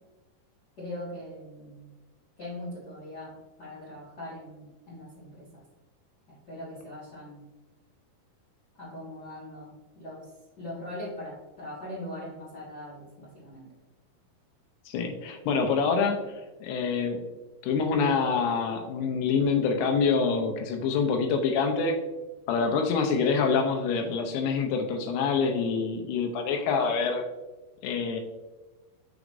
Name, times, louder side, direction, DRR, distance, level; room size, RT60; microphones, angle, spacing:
voice 1, 0.8-1.9 2.4-5.6 6.5-7.4 8.8-10.3 10.6-13.7, left 1 dB, 40° left, -8 dB, 1.5 m, -41 dB
voice 2, 14.9-16.3 16.6-17.2 17.6-22.0 22.5-27.2 27.8-28.2, left 5 dB, 90° left, 4 dB, 2.8 m, -26 dB
6.2 x 6.1 x 2.6 m, 1.2 s
omnidirectional pair, 4.5 m